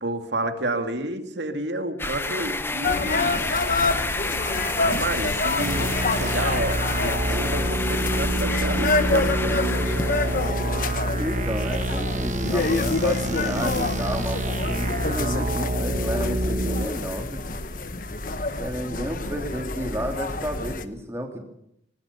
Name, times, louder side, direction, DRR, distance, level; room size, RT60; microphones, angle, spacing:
voice 1, 0.0-3.5 4.8-9.9, right 1 dB, 75° right, 6 dB, 2.4 m, -30 dB
sound 1, 2.0-10.5, left 2 dB, 15° left, 0.7 m, -30 dB
sound 2, 2.8-20.8, left 3 dB, 50° left, 1.2 m, -28 dB
sound 3, 5.6-16.9, right 1 dB, 40° right, 1.3 m, -27 dB
voice 2, 11.1-17.4 18.6-21.4, equal, 15° right, 3 dB, 3.3 m, -32 dB
20.0 x 19.5 x 7.1 m, 0.76 s
head